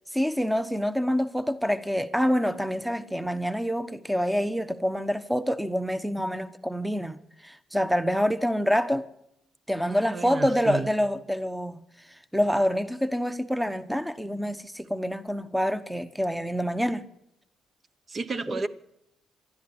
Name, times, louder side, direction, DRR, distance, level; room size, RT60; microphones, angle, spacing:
voice 1, 0.1-7.2 7.4-9.0 9.7-11.8 12.3-17.0 18.5-18.6, equal, 5° right, 1.0 m, -26 dB
voice 2, 9.8-10.9 18.1-18.7, right 4 dB, 40° right, 1.0 m, -32 dB
25.0 x 12.0 x 8.8 m
cardioid pair, 90°, 0 cm